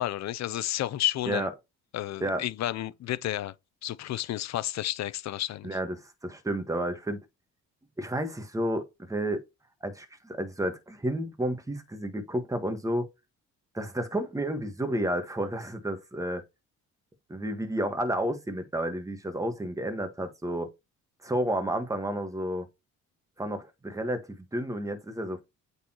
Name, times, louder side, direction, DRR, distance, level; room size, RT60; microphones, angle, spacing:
voice 1, 0.0-1.5 1.9-3.5 3.8-5.8, left 13 dB, 60° left, 0.6 m, -31 dB
voice 2, 5.6-7.2 8.0-9.4 9.8-13.1 13.7-16.4 17.3-20.7 21.2-22.7 23.4-25.4, right 1 dB, 10° right, 1.4 m, -31 dB
8.3 x 4.1 x 3.0 m
cardioid pair, 90°, 30 cm